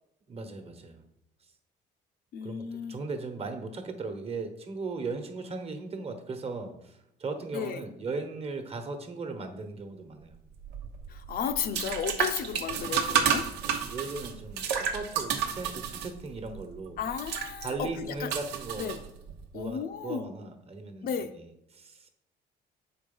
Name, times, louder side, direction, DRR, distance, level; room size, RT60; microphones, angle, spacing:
voice 1, 0.3-1.0 2.4-10.4 12.7-13.0 13.6-17.0 17.6-19.0 19.5-21.4 21.7-22.1, right 3 dB, 35° right, 6 dB, 1.2 m, -38 dB
voice 2, 2.3-3.0 7.5-7.8 11.1-13.5 17.0-17.9 18.2-18.3 18.8-19.0 19.5-20.3 21.0-21.3, left 7 dB, 60° left, 8 dB, 0.7 m, -33 dB
sound 1, 10.6-19.4, right 8 dB, 90° right, 1.0 m, -32 dB
6.8 x 4.7 x 5.4 m, 0.81 s
cardioid pair, 110°, 17 cm